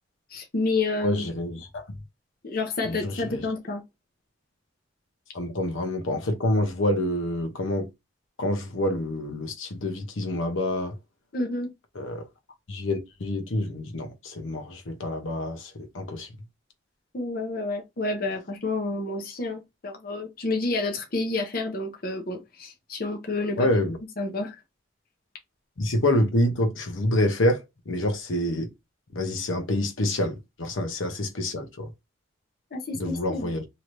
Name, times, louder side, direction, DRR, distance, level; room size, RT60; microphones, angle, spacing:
voice 1, 0.3-1.2 2.4-3.8 11.3-11.7 17.1-23.7 24.2-24.6 32.7-33.5, left 2 dB, 50° left, 0.7 m, -29 dB
voice 2, 1.0-1.8 2.8-3.5 5.3-7.9 8.4-11.0 12.0-12.3 12.7-16.3 23.6-24.0 25.8-28.7 29.1-31.9 32.9-33.7, left 1 dB, 85° left, 0.8 m, -27 dB
3.1 x 2.8 x 2.5 m
head